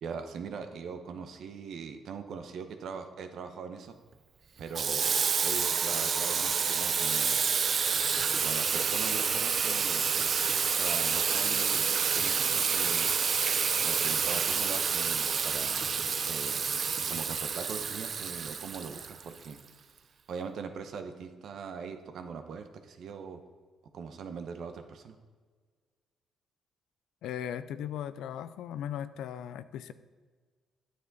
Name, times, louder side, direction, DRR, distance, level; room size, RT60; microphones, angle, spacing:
voice 1, 0.0-4.0 4.6-7.4 8.4-10.0 10.7-13.1 13.8-15.9 16.2-16.7 17.1-19.6 20.3-23.4 23.9-25.2, right 5 dB, 70° right, 7 dB, 0.8 m, -41 dB
Water tap faucet / Sink (filling or washing), 4.7-19.5, right 6 dB, 50° right, 0.4 m, -28 dB
voice 2, 27.2-29.9, left 10 dB, 85° left, 13 dB, 0.4 m, -37 dB
9.4 x 6.2 x 4.0 m, 1.5 s
cardioid pair, 90°, 0 cm